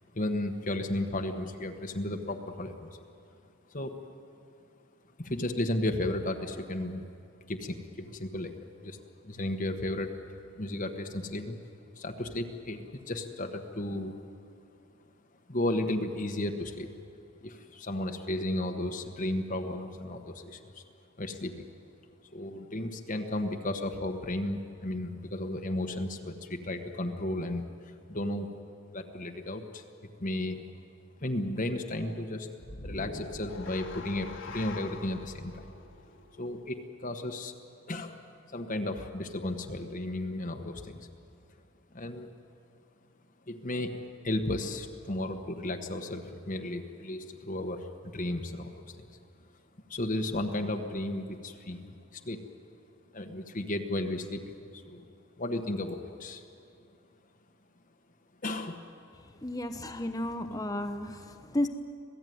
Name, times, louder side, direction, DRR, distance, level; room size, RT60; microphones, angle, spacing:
voice 1, 0.1-3.0 3.7-3.9 5.2-7.1 7.5-9.0 9.2-10.2 10.5-11.5 12.0-14.2 15.5-16.9 17.4-20.8 21.2-21.6 22.3-28.5 28.9-29.8 30.2-30.6 31.2-32.5 32.8-35.7 36.4-37.5 37.9-38.2 38.5-41.1 41.9-42.3 43.5-49.1 49.9-52.4 53.1-55.0 55.4-56.4 58.4-58.9, left 1 dB, 35° left, 4 dB, 1.2 m, -34 dB
sound 1, 32.6-36.9, left 3 dB, 60° left, 1.6 m, -44 dB
voice 2, 59.4-61.7, left 1 dB, 15° left, 6 dB, 0.9 m, -33 dB
26.5 x 17.5 x 9.4 m, 2.6 s
head